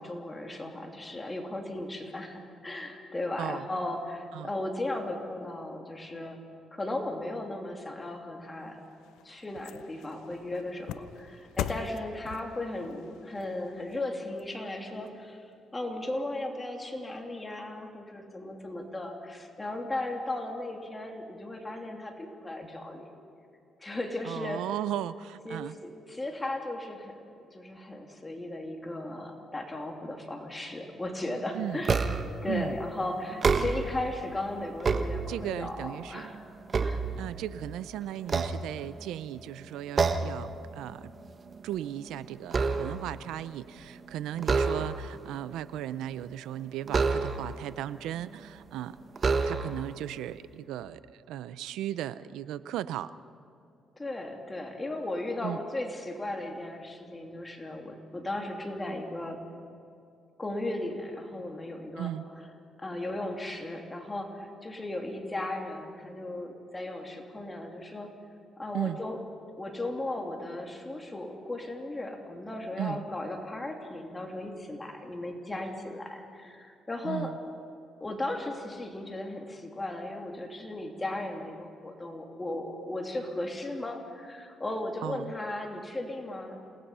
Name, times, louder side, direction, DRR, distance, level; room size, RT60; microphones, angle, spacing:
voice 1, 0.0-6.4 6.7-8.8 9.2-23.1 23.8-24.6 25.4-32.1 32.4-36.4 36.8-37.0 54.0-59.4 60.4-62.1 62.8-68.1 68.6-69.2 69.6-77.3 78.0-86.6, left 1 dB, 20° left, 2 dB, 3.0 m, -36 dB
voice 2, 3.4-3.7 4.3-4.5 24.2-25.8 31.5-31.8 32.5-32.8 35.3-36.3 37.2-41.1 41.6-49.0 49.4-53.1 55.4-55.6 62.0-62.2 68.7-69.0 72.8-73.1 77.0-77.4 85.0-85.3, right 12 dB, 90° right, 15 dB, 0.6 m, -36 dB
sound 1, 8.6-15.1 15.5-15.6, left 11 dB, 90° left, 0.7 m, -42 dB
sound 2, 31.8-32.4 33.3-34.1 34.6-35.7 36.2-37.7 38.2-39.2 40.0-40.5 40.8-41.1 41.5-43.2 44.4-45.2 46.9-47.7 48.4-48.5 49.2-49.9, right 4 dB, 40° right, 1.3 m, -28 dB
28.0 x 19.0 x 5.6 m, 2.5 s
cardioid pair, 90°, 0 cm